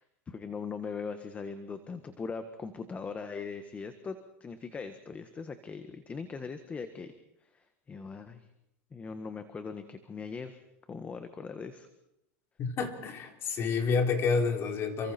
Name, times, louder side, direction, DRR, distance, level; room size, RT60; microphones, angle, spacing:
voice 1, 0.0-7.1 7.4-8.5 8.9-10.6 10.9-11.9, left 5 dB, 20° left, 9 dB, 1.5 m, -40 dB
voice 2, 12.6-15.1, left 5 dB, 35° left, 4 dB, 3.6 m, -29 dB
29.0 x 24.5 x 4.5 m, 0.86 s
supercardioid pair, 130°, 7 cm